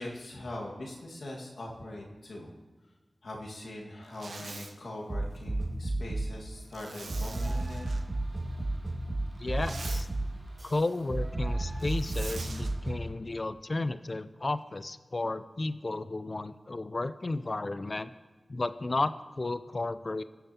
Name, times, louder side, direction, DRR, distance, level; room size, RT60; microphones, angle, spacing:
voice 1, 0.0-2.5 3.2-7.9, left 1 dB, 80° left, -2 dB, 1.8 m, -41 dB
Zipper (clothing), 4.0-4.7 6.7-8.0 9.3-10.1 11.8-12.7, right 3 dB, 85° right, 0.8 m, -44 dB
sound 1, 5.1-6.4 7.1-13.1, right 2 dB, 55° right, 3.1 m, -33 dB
voice 2, 9.4-10.1 10.6-18.1 18.5-20.2, left 2 dB, 45° left, 13 dB, 0.5 m, -33 dB
17.5 x 7.1 x 2.9 m, 1.3 s
cardioid pair, 45°, 0 cm